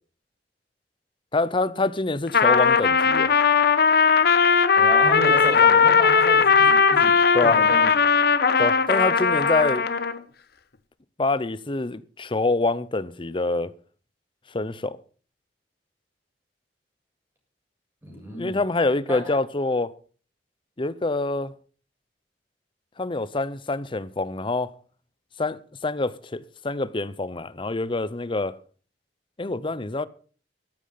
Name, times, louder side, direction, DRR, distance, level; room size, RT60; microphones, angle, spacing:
voice 1, 1.3-3.4 7.3-7.6 8.6-9.9 11.2-13.7 14.5-15.0 18.3-19.9 20.8-21.5 23.0-24.7 25.4-28.6 29.4-30.1, left 2 dB, 30° left, 0.7 m, -26 dB
Trumpet, 2.3-10.2, left 5 dB, 60° left, 1.0 m, -18 dB
voice 2, 4.8-7.1 7.4-7.9 18.0-18.6 19.1-19.4, right 1 dB, 15° right, 7.2 m, -32 dB
13.0 x 12.0 x 5.8 m
head